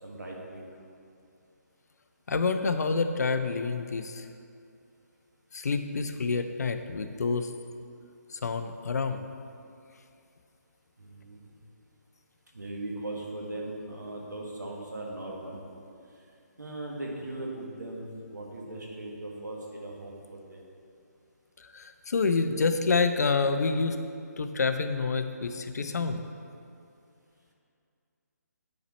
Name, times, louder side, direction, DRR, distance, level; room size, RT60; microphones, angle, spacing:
voice 1, 0.0-0.6 11.0-11.4 12.5-15.6 16.6-20.6, right 2 dB, 85° right, -1 dB, 1.6 m, -39 dB
voice 2, 2.3-4.3 5.5-7.5 8.3-9.3 21.6-24.0 24.4-26.2, left 4 dB, 65° left, 8 dB, 0.5 m, -28 dB
9.3 x 4.3 x 4.1 m, 2.4 s
figure-of-eight pair, 155°, 9 cm